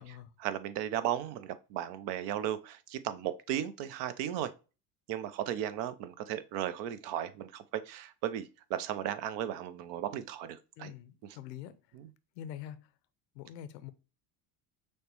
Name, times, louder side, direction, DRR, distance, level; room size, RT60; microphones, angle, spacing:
voice 1, 0.0-4.5 5.1-10.9, right 11 dB, 60° right, 0.6 m, -36 dB
voice 2, 10.8-11.8 12.3-12.9 13.3-13.9, left 10 dB, 80° left, 0.6 m, -45 dB
6.4 x 2.1 x 2.9 m
supercardioid pair, 90°, 48 cm